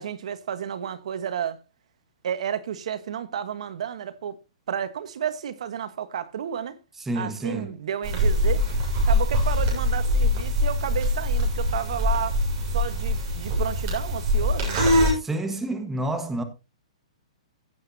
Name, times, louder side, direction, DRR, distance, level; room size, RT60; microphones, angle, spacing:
voice 1, 0.0-1.6 2.2-4.4 4.7-6.8 7.1-8.6 9.0-12.4 12.7-15.1, right 9 dB, 65° right, 1.4 m, -31 dB
voice 2, 7.0-7.8 15.2-16.4, right 1 dB, 5° right, 1.4 m, -29 dB
sound 1, 8.0-15.1, left 1 dB, 35° right, 6.7 m, -23 dB
16.5 x 8.2 x 2.8 m
hypercardioid pair, 150°, 4 cm